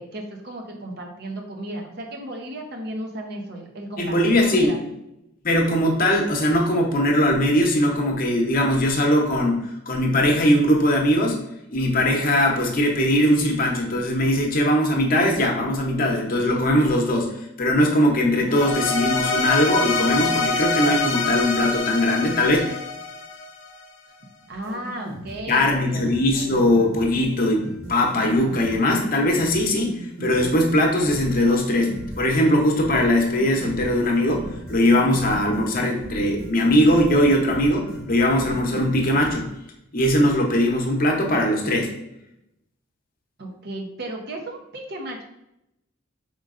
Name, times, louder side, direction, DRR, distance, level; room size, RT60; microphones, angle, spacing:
voice 1, 0.0-4.8 24.5-26.1 43.4-45.2, right 1 dB, 55° right, 1 dB, 0.8 m, -34 dB
voice 2, 4.0-4.7 5.4-11.4 11.7-22.6 25.5-39.5 39.9-41.9, left 1 dB, 45° left, 1 dB, 0.8 m, -20 dB
sound 1, 18.5-23.8, left 3 dB, 75° left, 0.7 m, -25 dB
sound 2, 24.5-39.3, right 1 dB, 90° right, 1.0 m, -38 dB
5.1 x 3.8 x 2.5 m, 0.85 s
head